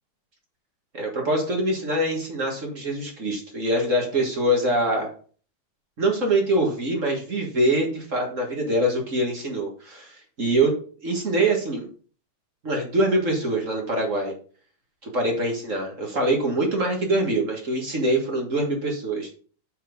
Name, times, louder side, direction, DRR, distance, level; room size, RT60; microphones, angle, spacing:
voice 1, 0.9-5.1 6.0-10.7 11.0-11.9 12.6-14.3 15.0-19.3, right 1 dB, 35° right, 1 dB, 1.9 m, -24 dB
8.2 x 4.3 x 5.3 m, 0.42 s
omnidirectional pair, 2.4 m